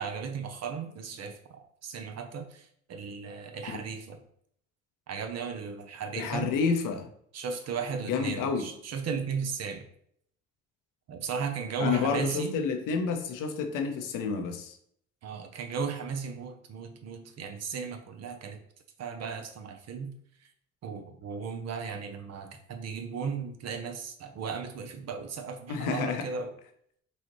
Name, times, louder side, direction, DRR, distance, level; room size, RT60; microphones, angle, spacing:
voice 1, 0.0-4.2 5.1-6.5 7.3-9.8 11.1-12.5 15.2-18.6 19.0-20.1 20.8-26.5, right 6 dB, 45° right, 6 dB, 0.7 m, -36 dB
voice 2, 6.1-7.1 8.1-8.6 11.8-14.8 25.7-26.3, left 5 dB, 65° left, 5 dB, 0.7 m, -29 dB
4.1 x 2.4 x 3.0 m, 0.65 s
hypercardioid pair, 65°, 35 cm